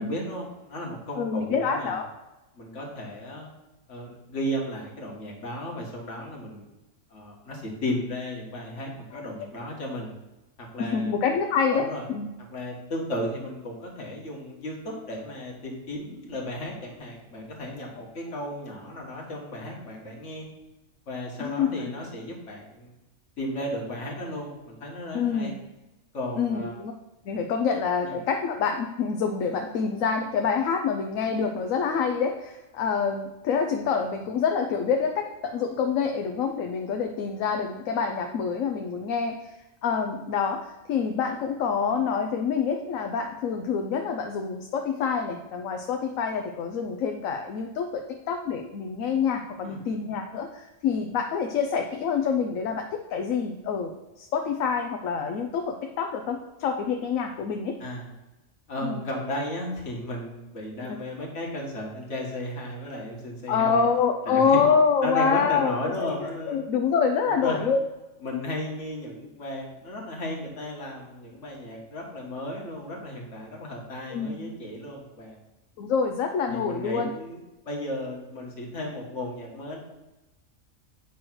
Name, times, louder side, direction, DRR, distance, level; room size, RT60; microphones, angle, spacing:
voice 1, 0.0-2.0 2.6-3.5 3.9-6.7 7.1-10.1 10.6-11.1 11.7-12.0 12.5-20.5 21.1-22.9 23.4-25.5 26.1-26.7 28.0-28.2 49.6-49.8 57.8-58.1 58.7-63.8 64.3-64.6 65.0-66.6 67.2-67.6 68.2-75.4 76.5-77.4 77.7-79.8, left 1 dB, 65° left, -1 dB, 1.9 m, -34 dB
voice 2, 1.2-2.1 9.1-9.3 10.8-12.3 21.4-21.7 25.1-25.6 26.4-26.9 27.3-39.5 39.8-48.0 48.3-53.9 54.2-57.7 58.8-59.0 63.5-65.7 66.0-66.1 66.5-67.8 68.3-68.4 74.1-74.5 75.8-77.1, left 6 dB, 80° left, 4 dB, 1.1 m, -26 dB
8.6 x 3.2 x 6.1 m, 1.0 s
omnidirectional pair, 1.4 m